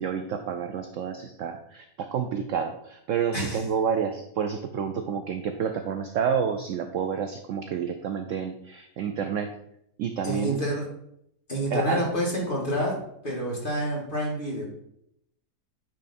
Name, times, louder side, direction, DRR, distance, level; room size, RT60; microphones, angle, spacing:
voice 1, 0.0-9.5 10.0-10.6 11.7-12.0, right 7 dB, 70° right, 7 dB, 0.7 m, -29 dB
voice 2, 10.2-10.8 11.5-13.0 13.2-14.6, equal, 30° left, -3 dB, 2.0 m, -28 dB
9.1 x 3.8 x 4.2 m, 0.75 s
omnidirectional pair, 1.8 m